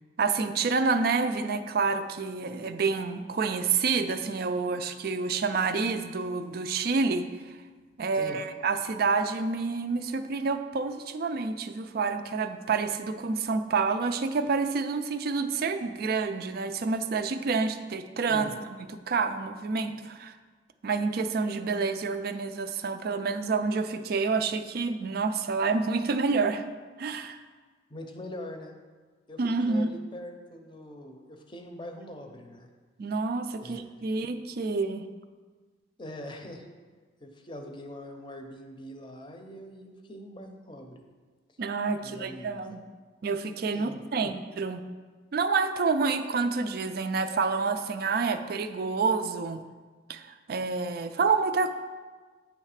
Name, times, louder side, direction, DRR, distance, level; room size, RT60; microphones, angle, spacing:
voice 1, 0.2-7.6 8.0-18.5 19.1-20.3 20.8-26.6 27.0-27.4 29.4-29.9 33.0-35.1 41.6-42.8 43.2-44.8 45.3-49.6 50.1-51.7, right 4 dB, 55° right, 9 dB, 0.4 m, -28 dB
voice 2, 27.9-28.7 29.3-29.4 29.7-32.7 33.6-34.3 36.0-36.7 37.2-41.0 42.0-42.8 43.7-44.3, left 1 dB, 25° left, 4 dB, 0.6 m, -43 dB
9.4 x 3.2 x 4.9 m, 1.4 s
head